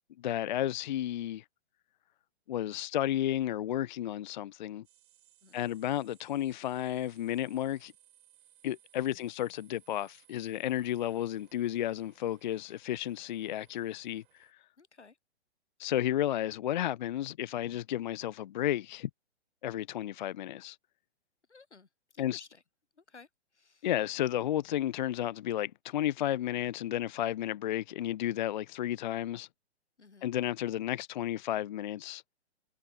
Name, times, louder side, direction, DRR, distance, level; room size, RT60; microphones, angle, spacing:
voice 1, 0.2-1.4 2.5-4.8 5.5-7.9 8.6-14.5 15.8-19.1 19.6-20.8 22.2-22.4 23.8-29.5 30.2-32.2, left 12 dB, 45° left, 0.4 m, -32 dB
sound 1, 4.8-14.5, right 13 dB, 45° right, 2.5 m, -65 dB
voice 2, 14.8-15.2 21.5-22.6 22.9-23.9 30.0-30.3, left 4 dB, 80° left, 2.9 m, -57 dB
figure-of-eight pair, 120°, 34 cm